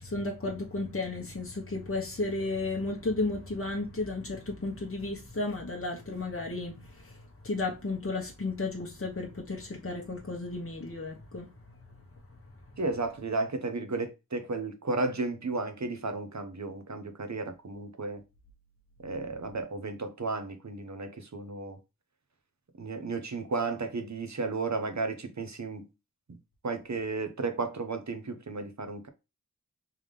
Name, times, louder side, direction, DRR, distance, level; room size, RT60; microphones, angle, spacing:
voice 1, 0.0-12.0 12.3-12.8, left 2 dB, 40° left, 1.1 m, -34 dB
voice 2, 12.8-18.2 19.0-21.8 22.8-25.9 26.3-26.4 26.6-29.1, right 3 dB, 50° right, 0.9 m, -33 dB
3.6 x 3.4 x 3.3 m
cardioid pair, 40°, 35 cm